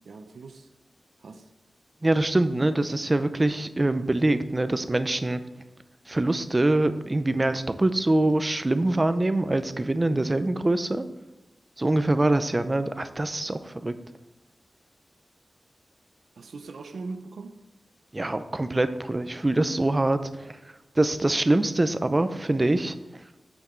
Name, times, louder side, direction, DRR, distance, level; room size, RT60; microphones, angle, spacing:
voice 1, 0.0-0.7 1.2-1.5 16.4-17.6, right 3 dB, 85° right, 7 dB, 0.6 m, -40 dB
voice 2, 2.0-5.4 6.1-11.0 11.8-13.9 18.1-20.6 21.0-22.9, right 2 dB, 25° right, 11 dB, 0.5 m, -24 dB
8.7 x 8.0 x 3.1 m, 0.98 s
wide cardioid pair, 125°, 0 cm